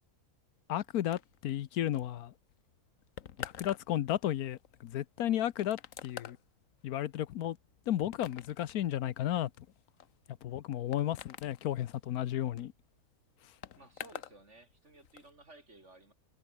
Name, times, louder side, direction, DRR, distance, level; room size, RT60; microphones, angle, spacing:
voice 1, 0.7-2.3 3.4-6.4 6.8-7.6 7.9-9.5 10.4-12.7, left 12 dB, 85° left, 1.3 m, -33 dB
sound 1, 1.1-14.4 14.7-15.3, left 9 dB, 65° left, 1.3 m, -49 dB
voice 2, 13.7-16.1, right 2 dB, 50° right, 4.9 m, -56 dB
omnidirectional pair, 1.6 m